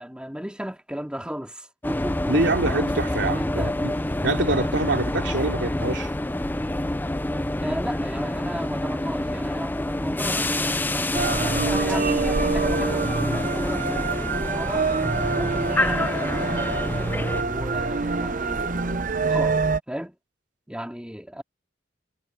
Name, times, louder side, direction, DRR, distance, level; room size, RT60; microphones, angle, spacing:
voice 1, 0.0-2.3 2.7-2.8 3.2-3.8 7.6-14.9 15.3-19.6 19.9-20.2 20.7-21.4, equal, 5° right, 2.5 m, -35 dB
sound 1, 1.8-17.4, left 1 dB, 10° left, 0.5 m, -27 dB
voice 2, 2.3-3.9 4.2-6.1, right 2 dB, 70° right, 3.0 m, -25 dB
sound 2, 11.1-19.8, right 4 dB, 45° right, 0.8 m, -25 dB
head